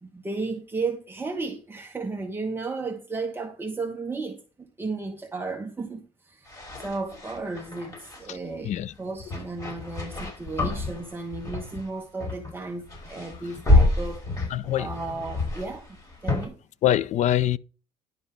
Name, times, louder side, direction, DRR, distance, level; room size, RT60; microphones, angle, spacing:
voice 1, 0.0-4.4 4.8-6.5 6.8-8.7 9.0-14.5 14.8-16.0 16.2-16.6, right 3 dB, 15° right, 1.2 m, -34 dB
sound 1, 6.5-8.3 9.2-11.9 12.2-12.6 12.8-16.5, left 2 dB, 25° left, 5.3 m, -27 dB
voice 2, 8.6-8.9 14.5-14.9 16.8-17.6, left 12 dB, 50° left, 0.5 m, -24 dB
11.0 x 5.4 x 5.8 m
cardioid pair, 130°, 15 cm